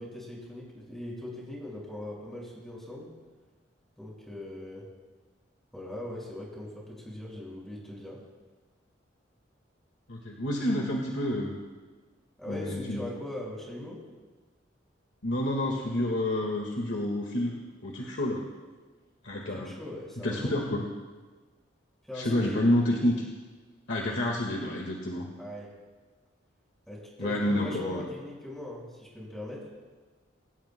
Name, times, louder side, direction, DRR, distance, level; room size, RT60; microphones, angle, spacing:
voice 1, 0.0-3.1 4.0-4.9 5.7-8.2 12.4-14.0 19.5-20.6 22.1-22.6 25.4-25.7 26.9-29.7, left 1 dB, ahead, -4 dB, 5.3 m, -40 dB
voice 2, 10.1-11.5 12.5-13.0 15.2-18.4 19.2-19.7 20.2-20.9 22.1-23.2 23.9-25.3 27.2-28.1, left 1 dB, 65° left, -1 dB, 1.7 m, -29 dB
24.0 x 18.0 x 2.2 m, 1.3 s
head